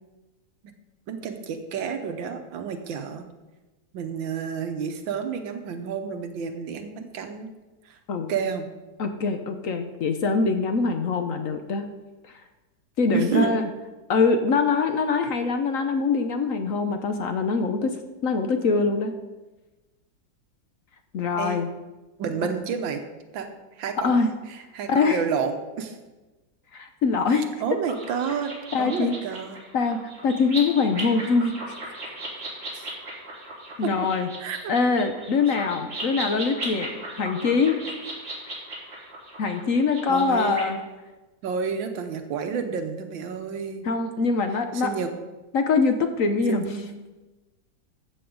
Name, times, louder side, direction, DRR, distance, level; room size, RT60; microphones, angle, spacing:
voice 1, 1.1-3.2 3.9-7.5 7.8-8.0 8.3-8.7 13.1-13.5 21.4-21.6 22.2-23.0 23.3-23.5 23.8-26.0 27.3-29.6 32.7-32.9 33.8-33.9 34.4-34.7 40.1-40.7 41.4-43.9 44.7-45.1 46.5-47.0, right 6 dB, 85° right, 7 dB, 1.7 m, -30 dB
voice 2, 9.0-11.8 13.0-13.7 14.1-19.1 21.1-21.7 24.0-24.3 24.9-25.2 26.7-27.5 28.7-29.1 29.7-31.5 33.8-34.3 34.7-36.9 37.2-37.8 39.4-40.8 43.8-44.9 45.5-46.7, left 4 dB, 60° left, 7 dB, 0.9 m, -23 dB
sound 1, 27.9-40.6, right 2 dB, 35° right, 3.5 m, -37 dB
13.5 x 7.7 x 3.8 m, 1.1 s
omnidirectional pair, 2.1 m